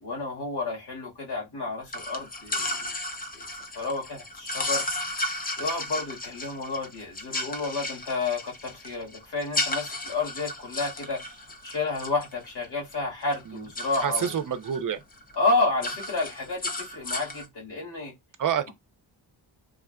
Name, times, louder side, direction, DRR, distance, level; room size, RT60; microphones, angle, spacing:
voice 1, 0.0-2.9 3.3-3.5 3.7-4.8 5.6-11.2 11.6-14.3 15.3-18.1, left 3 dB, 70° left, 1.9 m, -30 dB
sound 1, 1.9-13.0 13.2-14.8 15.1-15.4 15.6-17.5, left 1 dB, 20° left, 0.7 m, -34 dB
voice 2, 14.0-15.0 18.4-18.7, right 8 dB, 50° right, 0.6 m, -27 dB
3.6 x 2.4 x 2.2 m
cardioid pair, 70°, 43 cm